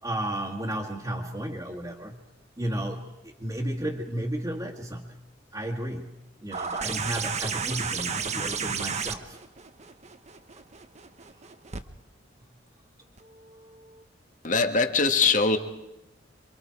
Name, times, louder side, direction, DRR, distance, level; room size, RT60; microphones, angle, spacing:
voice 1, 0.0-2.2 2.6-5.2 5.5-6.1 6.4-9.4, right 1 dB, 20° right, -3 dB, 2.0 m, -33 dB
sound 1, 6.5-11.8 13.2-13.3, right 5 dB, 40° right, 1.1 m, -32 dB
voice 2, 14.4-15.6, left 4 dB, 45° left, 7 dB, 1.8 m, -22 dB
27.5 x 25.5 x 4.7 m, 0.94 s
head